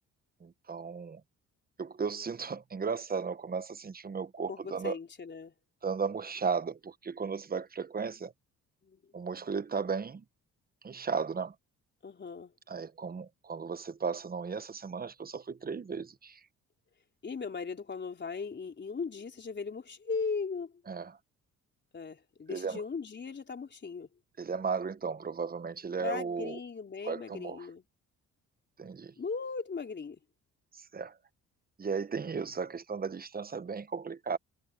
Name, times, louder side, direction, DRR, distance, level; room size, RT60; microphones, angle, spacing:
voice 1, 0.4-1.2 1.8-4.9 5.8-8.3 9.1-10.2 10.8-11.5 12.7-16.4 20.9-21.1 22.5-22.8 24.4-26.6 27.0-27.6 28.8-29.1 30.9-31.1 31.8-34.4, right 5 dB, 30° right, 1.1 m, -35 dB
voice 2, 4.5-5.5 8.8-9.0 12.0-12.5 17.2-20.7 21.9-24.1 26.0-27.8 29.2-30.2, left 5 dB, 35° left, 4.2 m, -38 dB
cardioid pair, 90°, 30 cm